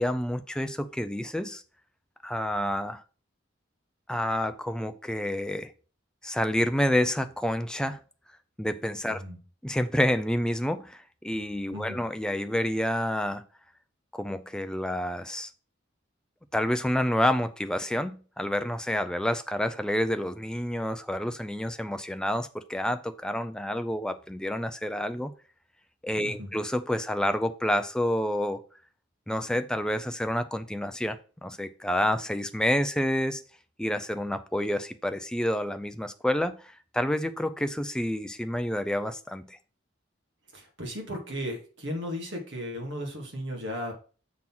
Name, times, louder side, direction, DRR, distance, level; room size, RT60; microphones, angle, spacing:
voice 1, 0.0-1.6 2.2-3.0 4.1-5.7 6.2-8.0 8.6-9.2 9.6-13.4 14.1-15.5 16.5-25.3 26.0-28.6 29.3-33.4 33.8-39.6, left 1 dB, 5° left, 0.4 m, -29 dB
voice 2, 9.1-9.4 11.7-12.0 26.2-26.5 40.5-43.9, equal, 65° right, 2.3 m, -35 dB
7.3 x 3.8 x 5.9 m
head